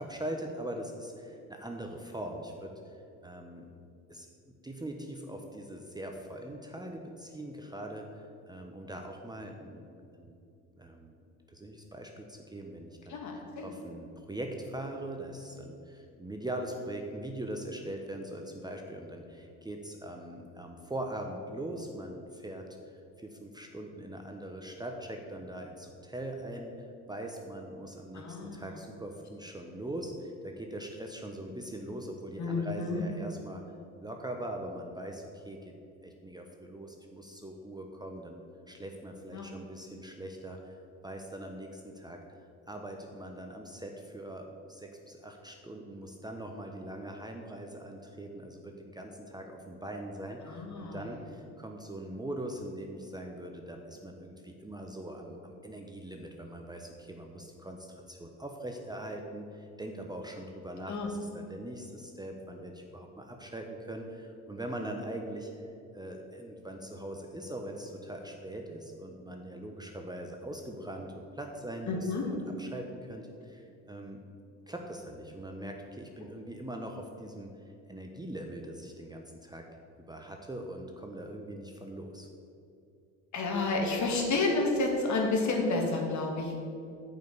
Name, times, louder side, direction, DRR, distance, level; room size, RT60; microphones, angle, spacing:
voice 1, 0.0-3.7 4.1-4.3 4.6-9.9 10.2-10.4 10.7-11.2 11.5-22.6 23.2-33.6 34.0-35.7 36.0-42.4 42.7-74.2 74.7-77.5 77.9-79.6 80.1-82.3, right 1 dB, 10° right, 2 dB, 1.0 m, -41 dB
voice 2, 13.1-13.7 28.1-28.7 32.4-33.0 39.3-39.5 50.5-51.1 60.9-61.1 71.9-72.2 83.3-86.6, left 3 dB, 45° left, 1 dB, 2.4 m, -30 dB
8.9 x 5.6 x 8.1 m, 2.6 s
supercardioid pair, 80°, 39 cm